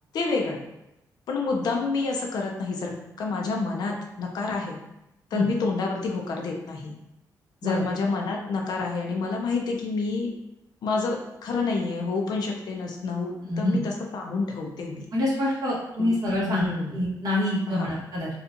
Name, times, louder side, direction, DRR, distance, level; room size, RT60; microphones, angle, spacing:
voice 1, 0.1-0.6 1.3-2.9 3.2-4.8 5.3-6.9 7.6-10.3 10.8-15.1 16.0-16.1 16.4-16.9 17.7-17.9, left 4 dB, 70° left, 0 dB, 0.6 m, -28 dB
voice 2, 13.4-13.8 15.1-16.7 16.9-18.3, left 1 dB, 55° right, -6 dB, 1.3 m, -26 dB
4.3 x 2.4 x 2.5 m, 0.85 s
wide cardioid pair, 160°, 7 cm